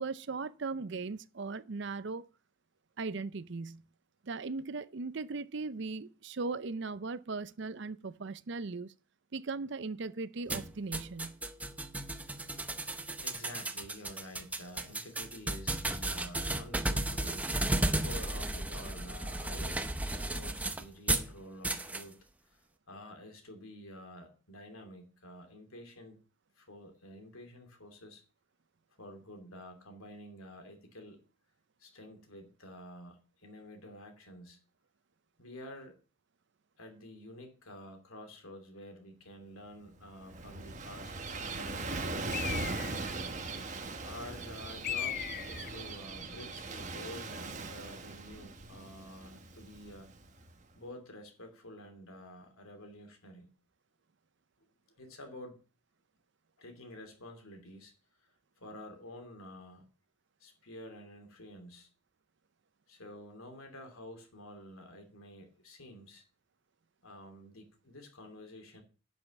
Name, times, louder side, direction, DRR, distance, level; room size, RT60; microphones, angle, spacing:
voice 1, 0.0-2.3 3.0-3.8 4.2-8.9 9.3-11.4, right 4 dB, 55° right, 0.5 m, -38 dB
sound 1, 10.5-21.3 21.6-22.0, right 2 dB, 5° right, 0.6 m, -34 dB
voice 2, 13.2-19.8 20.0-22.2 22.4-22.6 22.9-26.2 26.6-28.2 29.0-31.3 31.8-34.6 35.4-36.0 36.8-43.1 44.0-50.1 50.7-53.5 54.9-55.6 56.6-57.9 58.6-59.9 60.4-61.9 62.9-66.2 67.0-68.8, left 1 dB, 80° left, 2.7 m, -49 dB
Gull seagull / Waves surf, 40.0-50.5, right 3 dB, 35° right, 1.2 m, -40 dB
Bird, 42.3-43.2 44.8-45.8, left 11 dB, 40° left, 0.4 m, -37 dB
11.0 x 5.4 x 7.2 m
head